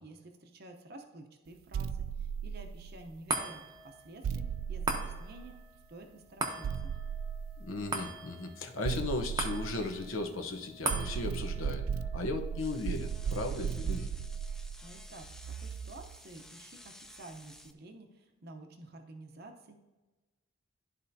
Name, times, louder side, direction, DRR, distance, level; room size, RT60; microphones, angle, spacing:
voice 1, 0.0-5.6 5.9-7.0 14.8-19.9, right 2 dB, 50° right, 4 dB, 0.7 m, -51 dB
sound 1, 1.7-3.2 4.2-5.8 6.6-8.0 8.8-10.4 10.9-16.2, right 7 dB, 80° right, 0.3 m, -37 dB
sound 2, 3.3-15.9 16.3-16.4, right 2 dB, 20° right, 0.7 m, -41 dB
voice 2, 7.6-11.8 12.1-14.1, left 2 dB, 75° left, 4 dB, 0.9 m, -36 dB
sound 3, 12.6-17.7, left 1 dB, ahead, 0.3 m, -54 dB
12.5 x 4.2 x 2.7 m, 1.2 s
head